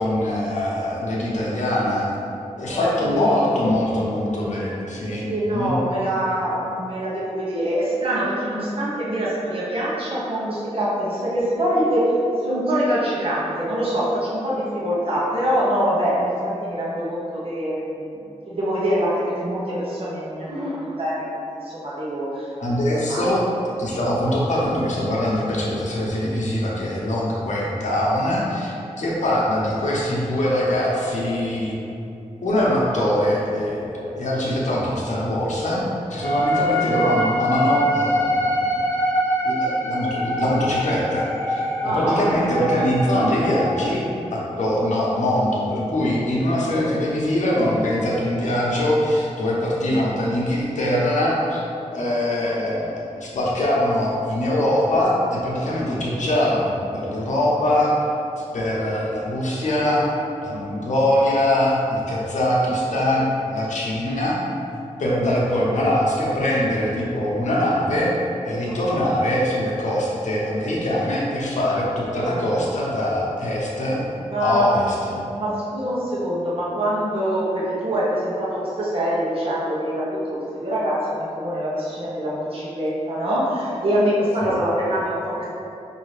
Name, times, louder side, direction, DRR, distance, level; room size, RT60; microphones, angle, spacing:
voice 1, 0.0-2.1 2.6-5.3 5.5-5.8 22.6-23.5 23.8-31.7 32.4-35.8 36.1-38.6 39.4-44.0 44.3-51.6 51.9-57.9 58.5-60.0 60.4-64.4 65.0-68.1 68.5-74.0 74.4-75.2 84.4-84.6, left 1 dB, 75° left, -5 dB, 0.9 m, -22 dB
voice 2, 2.7-3.4 5.3-12.1 12.4-18.2 18.5-21.2 21.6-22.5 22.8-23.2 41.8-42.3 68.7-69.1 74.3-74.9 75.3-85.4, equal, 50° right, -7 dB, 0.8 m, -24 dB
sound 1, 36.2-43.9, equal, 15° left, 0.6 m, -24 dB
5.4 x 2.7 x 3.2 m, 2.7 s
wide cardioid pair, 140°, 12 cm